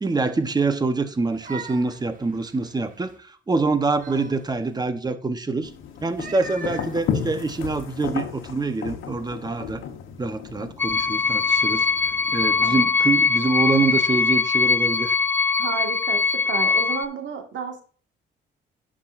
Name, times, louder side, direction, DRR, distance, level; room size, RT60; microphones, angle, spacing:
voice 1, 0.0-5.7 6.0-9.8 10.2-11.9 12.3-15.1, right 3 dB, 20° right, 1.0 m, -25 dB
sound 1, 1.1-3.2 3.7-4.9 6.0-7.8, right 4 dB, 40° right, 1.4 m, -42 dB
sound 2, 5.6-12.8, left 7 dB, 85° left, 1.2 m, -34 dB
sound 3, 10.8-17.1, left 4 dB, 10° left, 0.4 m, -21 dB
voice 2, 12.6-12.9 15.6-17.8, right 6 dB, 70° right, 1.9 m, -32 dB
10.5 x 6.2 x 2.6 m
cardioid pair, 90°, 20 cm